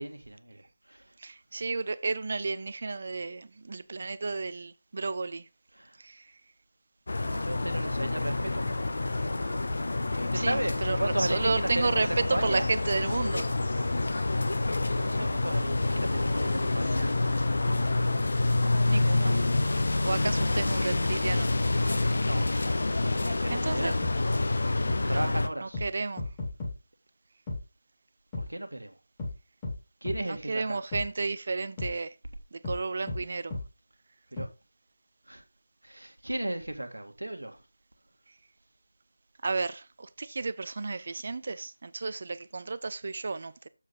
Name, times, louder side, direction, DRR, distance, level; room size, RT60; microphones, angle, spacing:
voice 1, 0.0-1.1 5.7-6.0 7.2-8.7 10.3-12.7 15.0-17.1 22.2-22.5 23.2-24.0 25.1-25.8 28.3-29.0 30.0-30.8 34.3-34.5 35.3-35.4 35.8-37.6, right 1 dB, 70° right, 1.6 m, -35 dB
voice 2, 1.2-5.5 6.0-6.2 10.3-13.5 18.9-19.4 20.0-22.0 23.5-23.9 25.0-25.3 25.6-26.2 30.3-32.1 32.5-33.6 39.4-43.7, right 3 dB, 40° right, 0.5 m, -32 dB
sound 1, 7.1-25.5, left 2 dB, 50° left, 0.8 m, -27 dB
sound 2, 24.0-24.2 24.9-25.0 25.7-25.9 26.2-26.7 27.5-27.6 28.3-28.5 29.2-29.3 29.6-29.8 30.1-30.2 30.9-31.1 31.8-31.9 32.6-32.8 33.1-33.2 33.5-33.6 34.4-34.5, left 2 dB, 15° left, 2.0 m, -34 dB
7.3 x 6.5 x 3.9 m
figure-of-eight pair, 165°, 0 cm